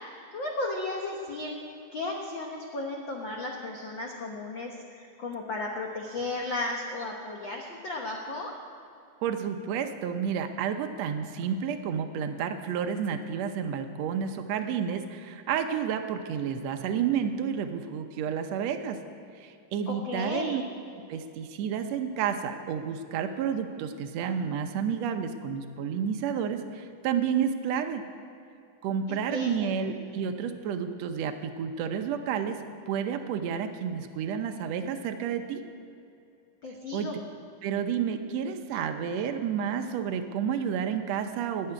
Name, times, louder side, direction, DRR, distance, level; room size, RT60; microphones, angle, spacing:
voice 1, 0.3-8.5 19.9-20.6 29.1-29.7 36.6-37.2, left 2 dB, 80° left, 0 dB, 1.0 m, -34 dB
voice 2, 9.2-19.0 19.4-20.6 21.1-28.0 28.8-35.6 36.9-37.1 37.6-41.7, right 7 dB, 80° right, 7 dB, 1.5 m, -30 dB
15.5 x 6.6 x 9.8 m, 2.5 s
omnidirectional pair, 3.9 m